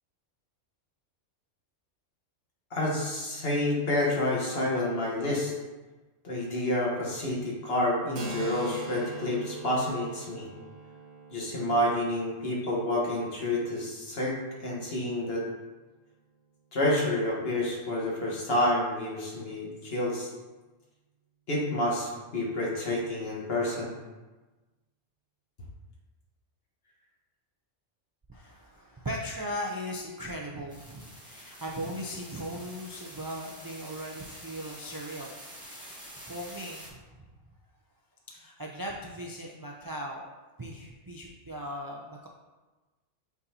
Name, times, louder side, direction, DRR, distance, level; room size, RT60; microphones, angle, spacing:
voice 1, 2.7-5.5 6.2-10.5 11.3-14.4 14.6-15.4 16.7-20.3 21.5-23.9, left 1 dB, 55° left, -4 dB, 1.6 m, -29 dB
Keyboard (musical), 8.2-15.5, right 3 dB, 85° right, 1.2 m, -43 dB
voice 2, 28.3-35.4 35.7-35.9 36.2-37.3 38.3-40.2 40.6-42.3, equal, 35° right, -2 dB, 0.3 m, -38 dB
sound 1, 30.7-36.9, equal, 5° right, 1.4 m, -47 dB
8.2 x 4.1 x 2.8 m, 1.2 s
omnidirectional pair, 1.2 m